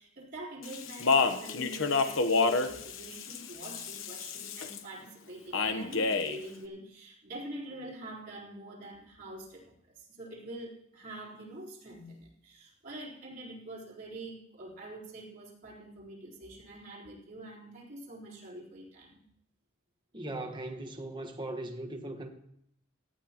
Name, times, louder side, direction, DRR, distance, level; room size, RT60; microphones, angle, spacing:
voice 1, 0.0-19.2, right 1 dB, 45° right, -5 dB, 4.1 m, -45 dB
Speech, 0.6-4.8 5.5-6.4, left 4 dB, 85° left, 1.0 m, -29 dB
voice 2, 20.1-22.3, right 1 dB, 25° right, 4 dB, 1.3 m, -39 dB
18.0 x 13.5 x 3.0 m, 0.71 s
head